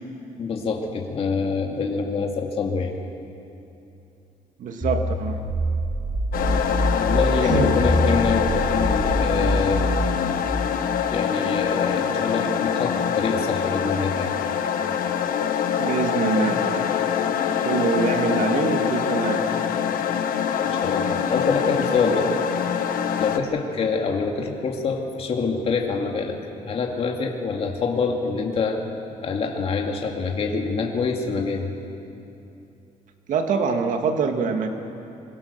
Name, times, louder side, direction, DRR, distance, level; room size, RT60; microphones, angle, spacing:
voice 1, 0.4-2.9 7.0-9.9 11.1-14.3 20.6-22.3 23.2-26.4 26.7-28.8 29.2-31.7, left 4 dB, 45° left, 2 dB, 2.2 m, -25 dB
voice 2, 4.6-5.4 7.4-7.8 15.8-16.9 17.6-19.5 33.3-34.7, right 5 dB, 65° right, 5 dB, 2.1 m, -24 dB
sound 1, 4.8-10.3, equal, 15° right, 4.6 m, -25 dB
sound 2, 6.3-23.4, left 8 dB, 80° left, 1.3 m, -24 dB
24.5 x 23.5 x 6.9 m, 2.8 s
cardioid pair, 175°, 14 cm